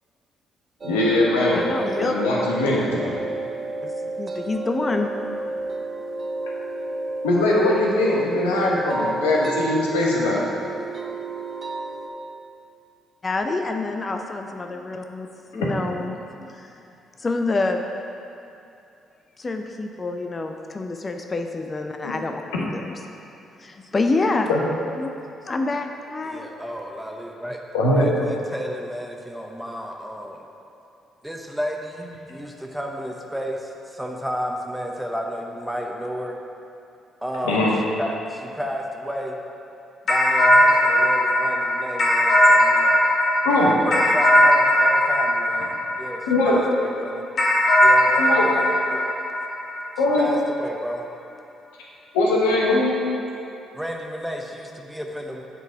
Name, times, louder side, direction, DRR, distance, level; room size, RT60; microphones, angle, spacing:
voice 1, 0.8-1.6 2.0-2.8 7.2-10.4 22.0-22.1 24.5-24.6 27.7-28.1 37.4-37.7 43.4-43.7 46.3-46.6 48.2-48.5 50.0-50.3 52.1-53.0, left 2 dB, 85° left, -4 dB, 1.1 m, -20 dB
sound 1, 0.8-12.1, right 2 dB, 45° right, 0.7 m, -31 dB
voice 2, 1.5-2.2 3.8-5.1 13.2-16.8 17.2-17.9 19.4-22.9 23.6-24.5 25.0-25.1 25.4-26.5, left 3 dB, 35° left, 4 dB, 0.5 m, -27 dB
voice 3, 26.2-27.6 27.9-30.4 31.2-36.4 37.2-37.7 38.0-39.4 40.0-43.0 43.6-47.2 47.8-49.0 50.2-51.0 53.7-55.4, equal, 5° right, 1 dB, 0.8 m, -32 dB
sound 2, 40.1-46.7 47.4-50.1, left 1 dB, 55° left, 1.1 m, -19 dB
8.1 x 3.9 x 4.7 m, 2.7 s
hypercardioid pair, 50°, 0 cm